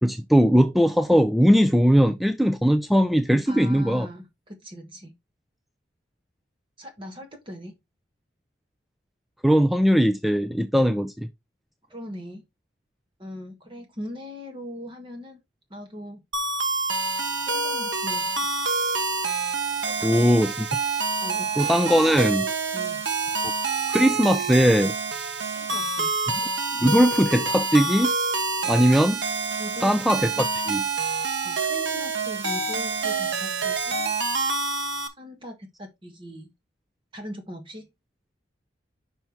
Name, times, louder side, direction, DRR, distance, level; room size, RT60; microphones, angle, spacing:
voice 1, 0.0-4.1 9.4-11.3 20.0-20.7 21.6-22.5 23.9-24.9 26.8-28.1 28.6-29.2 29.8-30.3 30.7-30.8, equal, ahead, 0.4 m, -19 dB
voice 2, 3.4-5.1 6.8-7.7 11.9-12.4 13.2-15.4 15.7-16.2 17.5-18.5 19.8-20.2 21.2-21.6 22.7-23.0 25.5-26.1 29.6-29.9 30.3-30.5 31.4-34.1 35.2-36.5 37.1-37.9, equal, 25° right, 1.5 m, -39 dB
sound 1, 16.3-35.1, right 3 dB, 75° right, 1.4 m, -27 dB
5.7 x 5.5 x 4.4 m
head